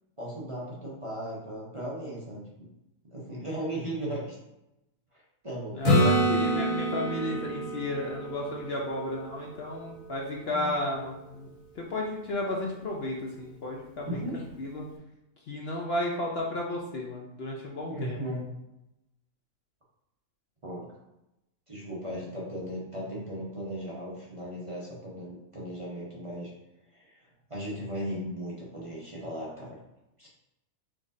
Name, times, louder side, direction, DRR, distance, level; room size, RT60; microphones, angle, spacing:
voice 1, 0.2-2.7 3.1-4.4 5.4-6.5 10.3-10.8 14.0-14.4 17.9-18.4 20.6-20.9 21.7-26.5 26.9-29.8 30.2-30.3, right 1 dB, 30° right, -6 dB, 0.8 m, -37 dB
voice 2, 5.7-11.5 11.7-14.9 15.5-18.2, left 1 dB, 55° left, -1 dB, 0.8 m, -33 dB
Acoustic guitar / Strum, 5.8-9.6 14.5-14.6, right 1 dB, 90° left, 1.6 m, -27 dB
4.6 x 3.8 x 2.7 m, 0.90 s
omnidirectional pair, 1.4 m